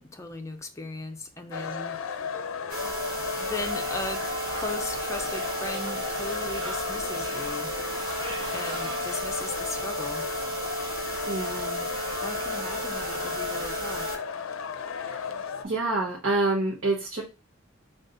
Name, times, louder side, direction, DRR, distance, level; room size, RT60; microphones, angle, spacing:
voice 1, 0.0-2.0 3.1-4.2 4.5-7.7 8.5-10.2 12.2-14.2, left 2 dB, 15° left, 0.6 m, -37 dB
sound 1, 1.5-15.6, left 6 dB, 75° left, 0.5 m, -34 dB
sound 2, 2.7-14.2 14.6-14.7 15.1-15.2 15.6-15.7, right 2 dB, 45° right, 1.4 m, -34 dB
sound 3, 3.6-9.2, right 2 dB, 20° right, 1.4 m, -42 dB
voice 2, 11.3-11.8 15.0-15.2 15.6-17.2, right 2 dB, 65° right, 0.9 m, -27 dB
4.0 x 2.4 x 3.8 m
head